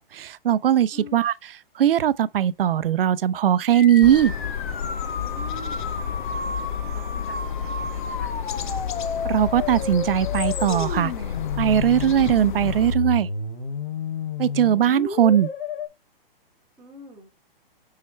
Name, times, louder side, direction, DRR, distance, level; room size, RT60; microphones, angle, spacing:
voice 1, 0.0-1.3 1.8-4.3 9.2-11.1 11.6-13.3 14.4-15.5, right 10 dB, 70° right, 0.6 m, -20 dB
voice 2, 0.9-1.3 5.1-6.0 6.9-8.3 16.8-17.3, left 1 dB, 5° right, 2.4 m, -45 dB
sound 1, 3.7-15.9, left 4 dB, 80° left, 2.3 m, -32 dB
sound 2, 4.0-13.0, left 8 dB, 55° left, 0.7 m, -31 dB
6.3 x 5.7 x 3.2 m
hypercardioid pair, 170°, 29 cm